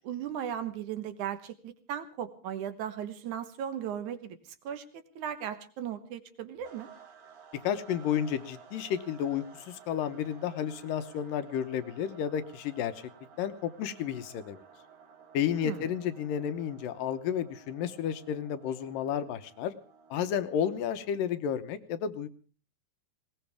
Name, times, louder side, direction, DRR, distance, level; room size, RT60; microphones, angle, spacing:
voice 1, 0.0-4.4 4.6-6.9 15.5-15.9, right 9 dB, 65° right, 11 dB, 2.3 m, -37 dB
sound 1, 6.6-21.4, right 6 dB, 80° right, 5.1 m, -55 dB
voice 2, 7.6-13.0 13.4-14.6 15.3-19.7 20.1-22.3, left 9 dB, 70° left, 11 dB, 2.4 m, -32 dB
20.5 x 19.0 x 3.5 m, 0.38 s
omnidirectional pair, 4.5 m